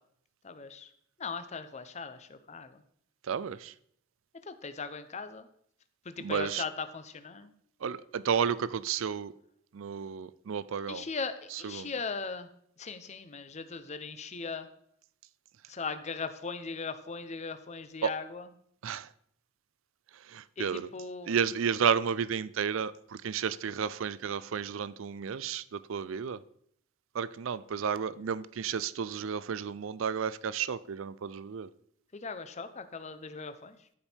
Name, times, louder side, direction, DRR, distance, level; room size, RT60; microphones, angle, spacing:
voice 1, 0.4-0.9 1.2-2.8 4.5-5.5 6.1-7.5 10.9-12.5 12.8-14.7 15.7-18.4 20.6-21.3 32.1-33.8, left 4 dB, 35° left, 10 dB, 0.6 m, -39 dB
voice 2, 3.2-3.7 6.2-6.7 7.8-9.3 9.7-11.1 11.5-11.9 18.0-18.1 18.8-19.1 20.1-20.9 21.3-26.4 27.1-31.7, right 7 dB, 70° right, 17 dB, 0.4 m, -32 dB
13.5 x 5.3 x 4.4 m, 0.68 s
head